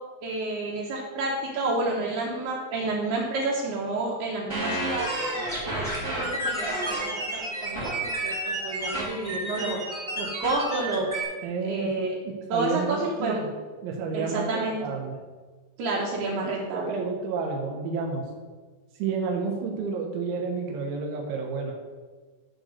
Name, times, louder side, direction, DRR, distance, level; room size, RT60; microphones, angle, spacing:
voice 1, 0.2-5.1 5.6-9.8 10.2-11.1 11.6-12.1 12.5-13.4 14.1-14.8 15.8-17.0, right 2 dB, 70° right, -4 dB, 2.8 m, -30 dB
sound 1, 4.5-11.2, right 1 dB, 20° right, 0.7 m, -31 dB
voice 2, 11.4-11.9 12.5-13.5 13.8-15.2 16.4-18.2 19.0-21.7, right 4 dB, 90° right, 0 dB, 3.6 m, -30 dB
11.5 x 3.8 x 6.5 m, 1.4 s
omnidirectional pair, 5.3 m